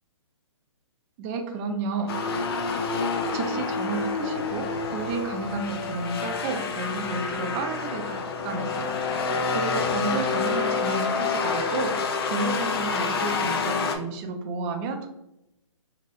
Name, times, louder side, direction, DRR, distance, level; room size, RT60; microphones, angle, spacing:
voice 1, 1.2-2.1 2.9-3.1 3.3-9.2 9.5-15.1, right 4 dB, 20° right, 5 dB, 0.4 m, -32 dB
sound 1, 2.1-14.0, left 4 dB, 50° left, 0.5 m, -28 dB
2.9 x 2.9 x 2.9 m, 0.87 s
figure-of-eight pair, 135°, 16 cm